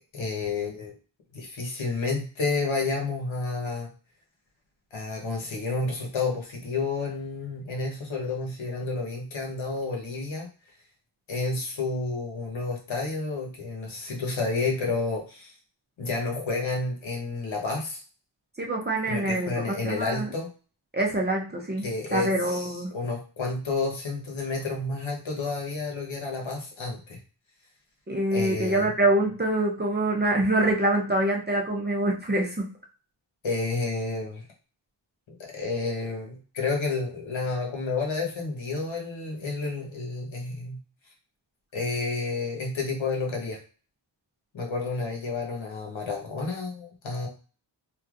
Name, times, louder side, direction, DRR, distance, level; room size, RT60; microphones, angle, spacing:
voice 1, 0.1-0.9 1.3-3.9 4.9-10.5 11.3-15.5 16.0-18.0 19.1-20.5 21.8-27.2 28.3-28.9 33.4-34.4 35.5-40.8 41.7-43.6 44.5-47.3, left 3 dB, 75° left, -1 dB, 1.2 m, -30 dB
voice 2, 18.6-20.3 20.9-22.9 28.1-32.7, right 1 dB, 20° right, -1 dB, 0.5 m, -25 dB
3.3 x 2.7 x 2.5 m, 0.37 s
wide cardioid pair, 155°, 47 cm